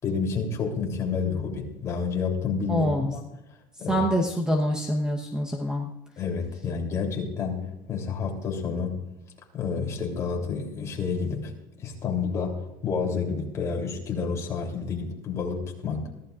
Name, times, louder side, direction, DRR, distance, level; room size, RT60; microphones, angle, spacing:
voice 1, 0.0-3.2 3.8-4.1 6.2-9.0 9.5-11.5 11.8-16.1, left 5 dB, 30° left, -1 dB, 3.3 m, -29 dB
voice 2, 2.7-3.1 3.9-5.9, equal, 5° right, 1 dB, 1.1 m, -25 dB
23.5 x 15.5 x 2.5 m, 0.91 s
cardioid pair, 155°, 11 cm